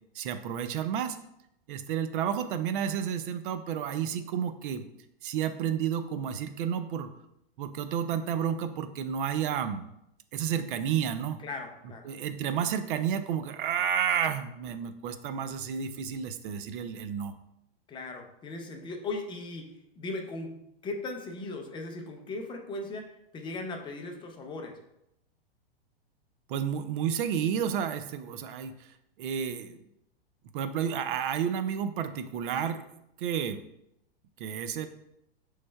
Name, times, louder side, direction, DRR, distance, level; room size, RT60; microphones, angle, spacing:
voice 1, 0.1-1.2 1.7-4.8 5.2-7.1 7.6-9.9 10.3-11.4 12.0-17.3 26.5-28.9 29.2-29.8 30.5-32.8 33.2-33.6 34.4-34.9, right 8 dB, 55° right, 10 dB, 0.5 m, -31 dB
voice 2, 11.4-12.1 17.9-24.8, left 2 dB, 15° left, 3 dB, 0.5 m, -38 dB
6.0 x 3.2 x 2.2 m, 0.80 s
hypercardioid pair, 125°, 30 cm